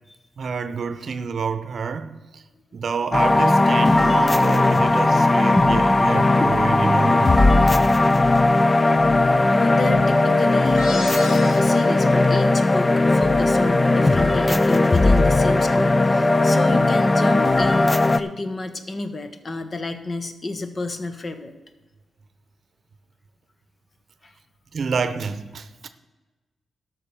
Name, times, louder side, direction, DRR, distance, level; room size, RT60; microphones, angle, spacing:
voice 1, 0.4-2.4 2.7-7.3 24.7-25.9, right 5 dB, 60° right, 0.7 m, -28 dB
sound 1, 3.1-18.2, left 2 dB, 25° left, 0.5 m, -17 dB
voice 2, 9.5-21.5 24.2-24.3, left 2 dB, 45° left, 1.1 m, -30 dB
sound 2, 10.8-12.1, left 2 dB, 90° left, 4.3 m, -35 dB
12.5 x 5.9 x 6.9 m
cardioid pair, 75°, 0 cm